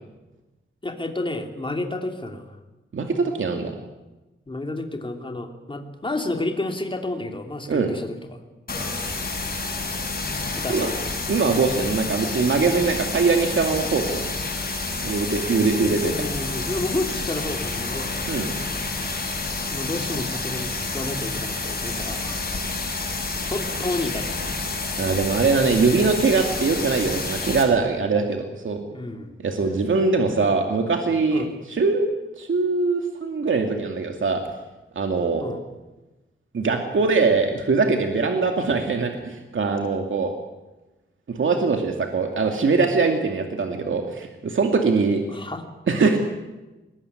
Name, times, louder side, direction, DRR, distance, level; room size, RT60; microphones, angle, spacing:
voice 1, 0.8-2.6 4.5-8.4 10.5-11.0 15.8-18.2 19.7-22.4 23.5-24.3 28.9-29.4 31.3-31.5 35.4-35.6 45.3-45.6, left 2 dB, 25° left, 4 dB, 3.1 m, -30 dB
voice 2, 2.9-3.7 7.7-7.9 10.7-10.9 11.3-14.3 15.0-16.3 18.3-18.5 25.0-28.8 29.4-32.1 32.4-34.4 35.0-35.4 36.5-40.3 41.3-45.2 45.9-46.2, right 4 dB, 70° right, 3 dB, 2.5 m, -22 dB
sound 1, 8.7-27.6, left 3 dB, 45° left, 7.0 m, -29 dB
22.5 x 20.5 x 9.8 m, 1.1 s
wide cardioid pair, 135°, 21 cm